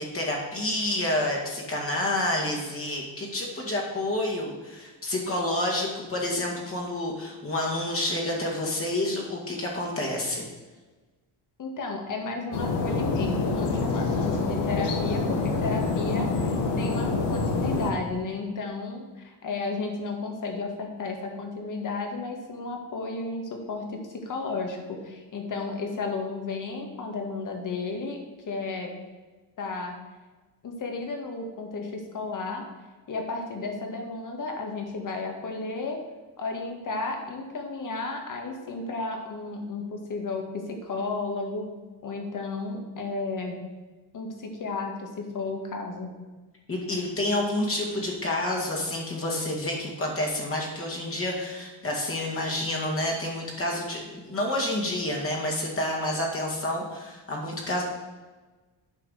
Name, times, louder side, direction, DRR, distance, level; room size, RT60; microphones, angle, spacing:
voice 1, 0.0-10.5 46.7-57.8, left 1 dB, 35° left, -1 dB, 2.1 m, -29 dB
voice 2, 11.6-28.2 28.5-28.9 29.6-29.9 30.6-32.6 33.1-36.0 36.4-41.7 42.0-43.6 44.1-46.1, left 3 dB, 50° left, 3 dB, 1.9 m, -33 dB
sound 1, 12.5-17.9, left 3 dB, 85° left, 1.5 m, -26 dB
9.1 x 4.9 x 6.4 m, 1.3 s
cardioid pair, 115°, 40 cm